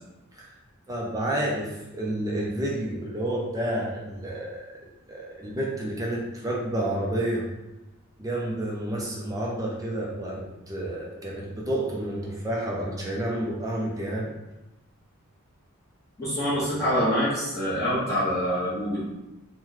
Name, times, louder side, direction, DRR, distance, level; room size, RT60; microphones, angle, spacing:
voice 1, 0.9-7.4 8.2-14.3, right 1 dB, 15° right, -3 dB, 0.4 m, -30 dB
voice 2, 16.2-19.0, equal, 15° left, -11 dB, 0.8 m, -25 dB
3.0 x 2.1 x 3.7 m, 0.97 s
head